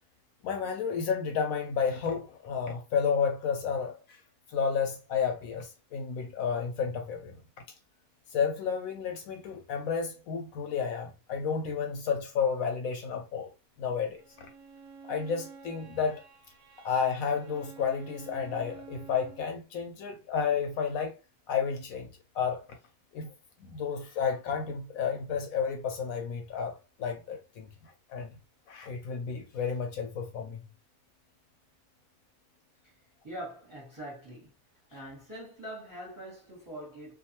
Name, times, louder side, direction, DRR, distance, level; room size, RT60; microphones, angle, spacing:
voice 1, 0.4-4.0 4.5-7.3 8.3-13.5 13.8-14.2 15.1-16.2 16.8-21.2 21.5-22.1 22.3-22.6 23.1-23.3 23.6-27.7 28.1-28.3 28.7-30.6, left 6 dB, 75° left, 1.0 m, -31 dB
Bowed string instrument, 14.1-19.5, right 5 dB, 50° right, 0.8 m, -50 dB
voice 2, 33.2-34.5 34.9-37.2, right 1 dB, 15° right, 0.9 m, -43 dB
2.4 x 2.4 x 2.8 m
omnidirectional pair, 1.6 m